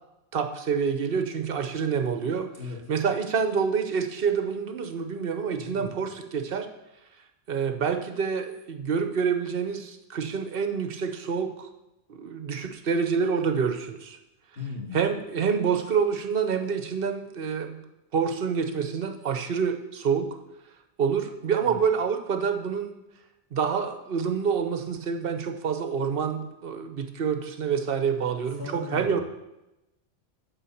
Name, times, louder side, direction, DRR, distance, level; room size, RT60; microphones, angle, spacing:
voice 1, 0.3-2.5 2.9-6.7 7.5-11.7 12.1-14.2 14.9-17.8 18.1-20.4 21.0-22.9 23.5-29.2, right 6 dB, 60° right, 7 dB, 1.0 m, -27 dB
voice 2, 5.5-6.0 14.6-15.0 21.6-21.8 28.6-29.2, left 3 dB, 70° left, -3 dB, 2.3 m, -37 dB
7.2 x 4.9 x 7.1 m, 0.93 s
omnidirectional pair, 1.1 m